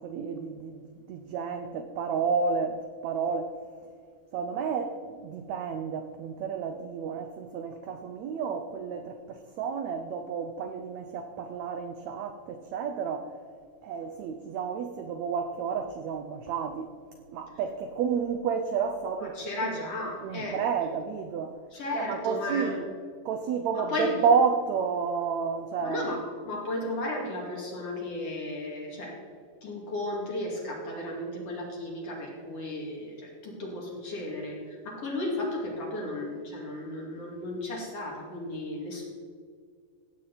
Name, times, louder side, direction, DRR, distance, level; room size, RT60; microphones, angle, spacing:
voice 1, 0.0-3.5 4.3-13.3 13.8-16.9 17.3-19.8 20.2-21.6 21.9-22.9 23.2-26.2, right 6 dB, 85° right, 6 dB, 1.5 m, -31 dB
voice 2, 19.3-20.6 21.7-22.8 23.8-24.2 25.8-29.2 29.6-39.0, left 1 dB, 45° left, -2 dB, 3.2 m, -34 dB
16.5 x 8.4 x 4.1 m, 2.1 s
omnidirectional pair, 4.0 m